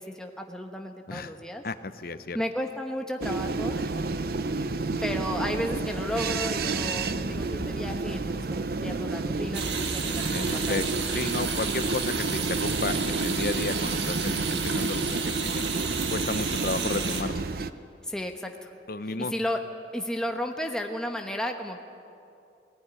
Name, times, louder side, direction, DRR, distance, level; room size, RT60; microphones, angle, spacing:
voice 1, 0.0-1.6 2.3-3.9 4.3-4.7 5.0-10.8 18.0-18.7 19.0-19.6 19.9-21.8, equal, 5° left, 3 dB, 1.1 m, -33 dB
voice 2, 1.6-2.4 10.3-17.4 18.9-19.3, left 3 dB, 55° left, 12 dB, 0.8 m, -33 dB
sound 1, 3.2-17.7, right 3 dB, 55° right, 0.7 m, -30 dB
sound 2, 9.5-17.2, right 6 dB, 80° right, 2.0 m, -32 dB
19.5 x 16.5 x 9.8 m, 2.6 s
head